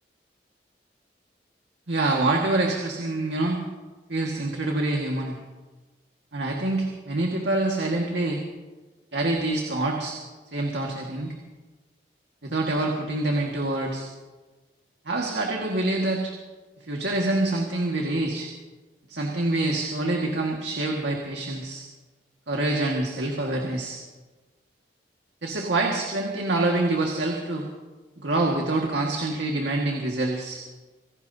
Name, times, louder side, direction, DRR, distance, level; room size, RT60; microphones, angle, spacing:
voice 1, 1.9-3.6 4.1-5.4 6.3-8.4 9.1-10.2 10.5-11.3 12.4-14.1 15.1-16.3 16.9-18.5 19.1-21.8 22.5-24.0 25.4-27.7 28.2-30.6, right 2 dB, 85° right, 0 dB, 1.8 m, -26 dB
26.0 x 17.0 x 2.8 m, 1.2 s
head